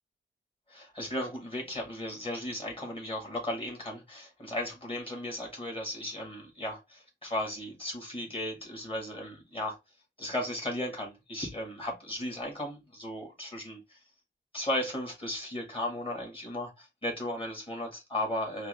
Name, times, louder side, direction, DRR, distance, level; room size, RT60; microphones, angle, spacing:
voice 1, 0.7-9.8 10.2-14.0 14.5-18.7, left 1 dB, 30° left, 1.6 m, -35 dB
4.5 x 2.1 x 3.1 m
wide cardioid pair, 150°, 19 cm